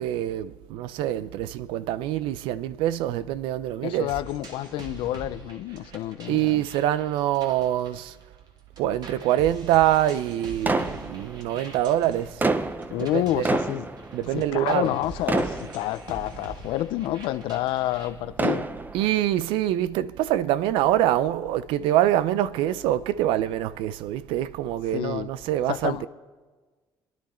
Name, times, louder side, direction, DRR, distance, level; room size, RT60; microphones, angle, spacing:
voice 1, 0.0-4.1 6.3-8.2 8.8-12.4 13.0-13.4 14.1-14.9 18.9-26.1, right 12 dB, 90° right, 0.5 m, -25 dB
voice 2, 3.8-6.6 12.9-13.9 14.3-18.7 24.9-25.3 25.7-26.1, left 14 dB, 85° left, 0.7 m, -29 dB
sound 1, 4.1-8.5 8.8-18.1, right 3 dB, 55° right, 2.3 m, -44 dB
sound 2, 10.7-11.7 12.2-15.0 15.3-16.3 17.0-17.1 18.1-19.2, right 3 dB, 20° right, 0.8 m, -27 dB
28.5 x 10.5 x 4.4 m
cardioid pair, 100°, 9 cm